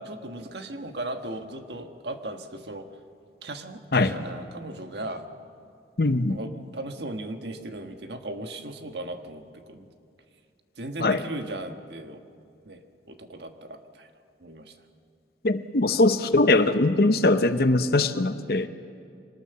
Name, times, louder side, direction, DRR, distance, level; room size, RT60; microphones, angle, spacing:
voice 1, 0.0-2.9 3.4-5.3 6.3-9.9 10.8-12.2 12.6-12.8 13.1-14.1 14.4-14.7, right 1 dB, 75° right, 6 dB, 1.5 m, -37 dB
voice 2, 6.0-6.4 11.0-11.2 15.4-18.7, left 2 dB, 60° left, 10 dB, 0.8 m, -21 dB
24.0 x 19.0 x 6.9 m, 2.4 s
head